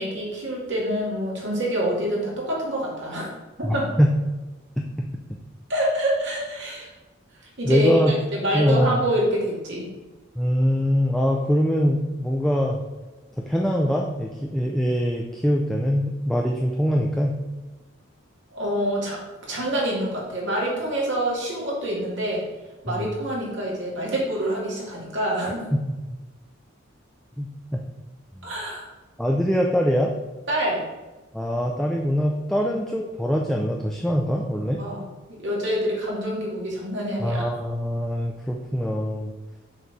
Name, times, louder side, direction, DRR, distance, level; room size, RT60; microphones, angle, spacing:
voice 1, 0.0-3.3 3.6-3.9 5.7-6.9 7.6-8.0 8.3-9.9 18.5-19.2 19.5-22.5 22.8-25.6 28.4-28.9 30.5-30.9 32.6-32.7 34.8-37.4, right 1 dB, 60° right, -4 dB, 2.5 m, -26 dB
voice 2, 3.6-4.1 4.8-4.9 7.6-8.1 8.5-9.0 10.4-12.8 13.5-17.4 22.9-23.1 25.7-25.8 27.4-27.5 29.2-30.1 31.3-34.8 37.2-39.3, equal, ahead, 0 dB, 0.4 m, -23 dB
6.6 x 4.7 x 6.0 m, 1.2 s
head